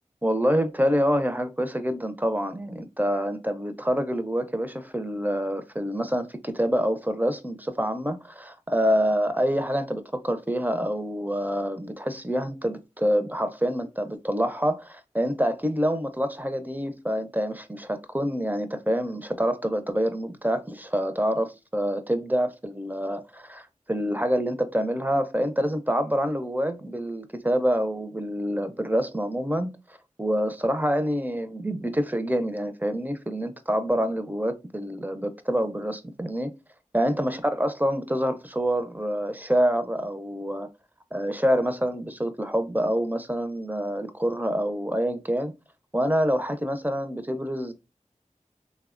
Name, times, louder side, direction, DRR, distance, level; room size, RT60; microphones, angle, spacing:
voice 1, 0.2-29.7 30.2-36.5 36.9-40.7 41.1-45.5 45.9-47.7, equal, 15° right, 0.4 m, -26 dB
3.2 x 2.1 x 2.4 m
wide cardioid pair, 40°, 13 cm